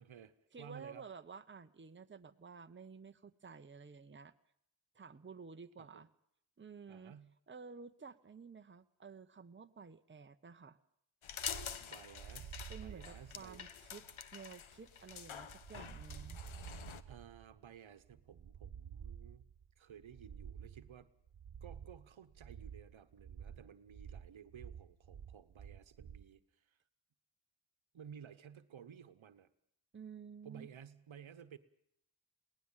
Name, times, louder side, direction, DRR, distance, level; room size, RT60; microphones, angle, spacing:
voice 1, 0.0-1.0 5.8-6.0 6.9-7.3 11.8-13.6 17.1-19.4 19.8-21.1 21.6-26.8 27.9-29.5 30.4-31.6, right 8 dB, 75° right, 12 dB, 1.2 m, -55 dB
voice 2, 0.5-4.3 4.9-6.1 6.6-7.1 7.5-10.8 12.7-14.1 14.3-16.4 29.9-30.7, right 5 dB, 25° right, 9 dB, 0.9 m, -52 dB
sound 1, 11.2-17.0, left 8 dB, 80° left, 1.1 m, -47 dB
sound 2, 11.4-26.3, right 8 dB, 55° right, 1.3 m, -51 dB
22.0 x 17.5 x 7.4 m, 0.73 s
cardioid pair, 55°, 48 cm